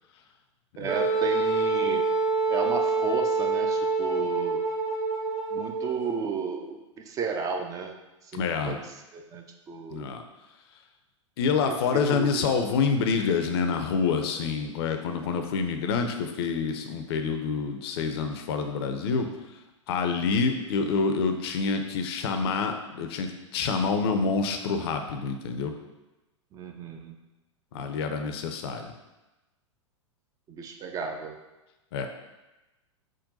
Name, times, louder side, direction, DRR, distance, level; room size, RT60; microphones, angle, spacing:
voice 1, 0.8-2.1 2.5-4.6 5.5-6.8 7.0-8.0 8.3-8.8 9.1-10.0 11.6-11.8 12.1-12.5 26.5-27.2 30.5-31.4, right 5 dB, 20° right, 4 dB, 0.3 m, -33 dB
Wind instrument woodwind instrument, 0.9-6.0, right 3 dB, 65° right, 1.3 m, -26 dB
voice 2, 8.3-8.8 9.9-10.2 11.4-19.3 19.9-25.7 27.7-28.9 31.9-32.1, left 5 dB, 55° left, 6 dB, 0.5 m, -27 dB
3.8 x 2.1 x 4.0 m, 1.0 s
figure-of-eight pair, 100°, 16 cm